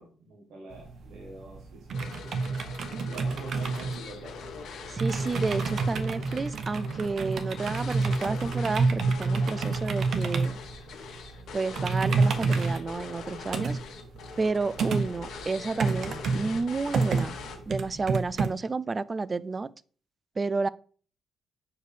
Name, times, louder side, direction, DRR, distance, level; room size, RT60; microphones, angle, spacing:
voice 1, 0.0-4.4, right 3 dB, 75° right, 1.6 m, -46 dB
sound 1, 0.7-18.5, right 4 dB, 60° right, 0.8 m, -29 dB
sound 2, 1.9-17.9, left 5 dB, 75° left, 1.4 m, -43 dB
voice 2, 5.0-10.5 11.5-13.8 14.4-17.4 17.7-19.7 20.4-20.7, right 4 dB, 30° right, 0.3 m, -31 dB
5.0 x 4.7 x 4.8 m
cardioid pair, 90°, 0 cm